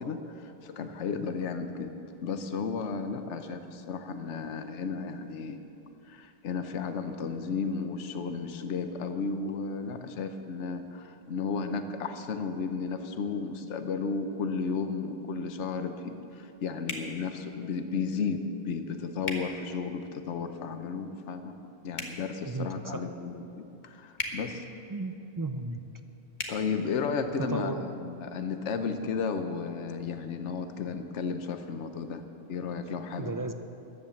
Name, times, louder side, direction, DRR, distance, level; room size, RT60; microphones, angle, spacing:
voice 1, 0.0-1.9 2.2-5.6 6.1-21.5 21.8-24.6 26.5-32.2 32.5-33.3, left 5 dB, 70° left, 8 dB, 1.2 m, -33 dB
sound 1, 16.9-17.1 19.2-19.4 21.9-22.2 24.1-24.4 26.3-26.5, left 2 dB, 40° left, 1.5 m, -35 dB
voice 2, 22.5-23.0 24.9-25.8 27.5-27.9 33.2-33.5, right 2 dB, 30° right, 7 dB, 0.3 m, -34 dB
14.5 x 10.5 x 7.1 m, 2.8 s
omnidirectional pair, 1.3 m